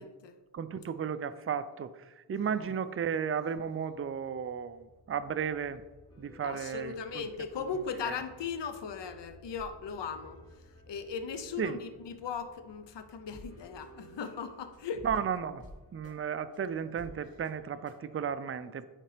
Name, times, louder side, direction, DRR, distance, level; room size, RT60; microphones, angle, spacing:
voice 1, 0.0-0.4 2.3-2.7 6.4-10.4 10.9-15.1, left 6 dB, 70° left, 0.7 m, -38 dB
voice 2, 0.5-5.8 6.2-7.3 8.1-8.2 11.6-11.8 15.0-15.7 15.9-18.9, right 7 dB, 30° right, 0.4 m, -34 dB
sound 1, 3.4-15.9, equal, 15° left, 1.7 m, -60 dB
sound 2, 6.1-8.8 9.7-12.7 13.0-13.1 13.3-18.3, equal, 30° left, 2.3 m, -55 dB
10.0 x 4.1 x 3.3 m
cardioid pair, 60°, 44 cm